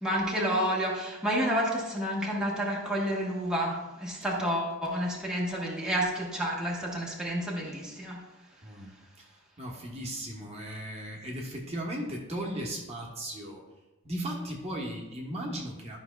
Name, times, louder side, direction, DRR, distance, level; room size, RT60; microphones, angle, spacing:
voice 1, 0.0-8.2, equal, 5° right, -4 dB, 1.1 m, -30 dB
voice 2, 9.6-13.6 14.0-16.0, right 1 dB, 30° right, -2 dB, 1.1 m, -36 dB
12.0 x 5.7 x 2.3 m, 1.0 s
head